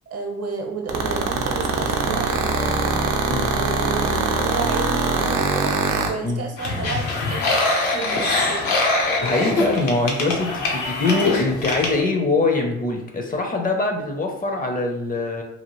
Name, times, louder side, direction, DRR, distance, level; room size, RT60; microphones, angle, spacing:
voice 1, 0.1-5.7 6.1-7.6 7.9-8.7, right 4 dB, 55° right, 2 dB, 0.7 m, -32 dB
sound 1, 0.9-6.1, right 5 dB, 90° right, 0.5 m, -21 dB
sound 2, 6.6-12.0, left 2 dB, 80° left, 0.8 m, -23 dB
voice 2, 9.2-15.4, left 3 dB, 30° left, 2 dB, 0.5 m, -23 dB
2.8 x 2.4 x 2.9 m, 0.82 s
cardioid pair, 90°, 30 cm